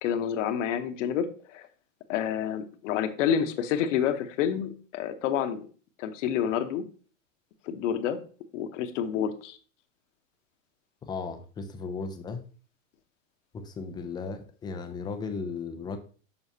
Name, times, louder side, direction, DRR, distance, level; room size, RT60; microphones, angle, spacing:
voice 1, 0.0-1.7 2.1-5.7 6.0-6.8 7.7-8.2 8.5-9.6, left 9 dB, 65° left, 1.0 m, -28 dB
voice 2, 11.0-12.4 13.5-16.0, left 4 dB, 10° left, 0.3 m, -36 dB
7.0 x 5.6 x 2.7 m
supercardioid pair, 130°, 39 cm